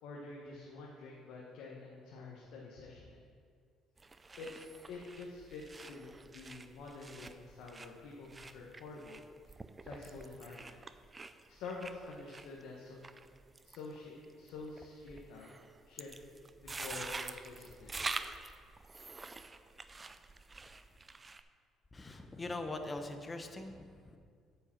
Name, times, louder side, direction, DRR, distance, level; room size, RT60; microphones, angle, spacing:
voice 1, 0.0-3.2 4.4-9.2 9.8-10.8 11.5-13.0 13.6-15.5 15.9-17.9, left 3 dB, 80° left, -3 dB, 1.1 m, -48 dB
sound 1, 4.0-21.4, right 3 dB, 25° right, 0.4 m, -47 dB
voice 2, 21.9-24.2, left 2 dB, 25° left, 6 dB, 0.9 m, -42 dB
8.7 x 5.4 x 5.8 m, 2.1 s
supercardioid pair, 85°, 0 cm